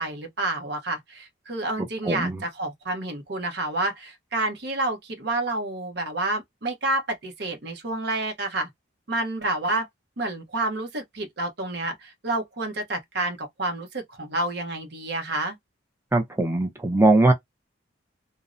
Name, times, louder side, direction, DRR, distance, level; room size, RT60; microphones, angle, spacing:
voice 1, 0.0-8.7 9.1-9.9 10.2-15.6, right 2 dB, 55° right, 0.8 m, -29 dB
voice 2, 16.1-17.3, right 2 dB, 10° right, 0.5 m, -20 dB
2.6 x 2.0 x 2.4 m
head